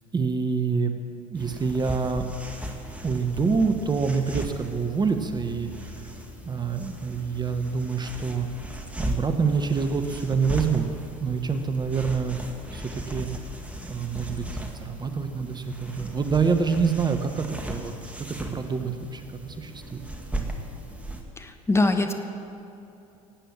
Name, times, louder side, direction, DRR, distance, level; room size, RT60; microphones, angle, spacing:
voice 1, 0.1-0.9 1.3-2.3 3.0-5.7 6.4-8.5 9.0-10.9 11.2-12.4 12.7-13.3 13.9-14.5 14.8-20.0, right 5 dB, 25° right, 7 dB, 1.2 m, -26 dB
sound 1, 1.3-21.2, right 1 dB, 5° right, 2.0 m, -37 dB
voice 2, 21.4-22.1, left 2 dB, 15° left, 6 dB, 1.2 m, -23 dB
17.0 x 9.1 x 7.3 m, 2.9 s
hypercardioid pair, 70°, 17 cm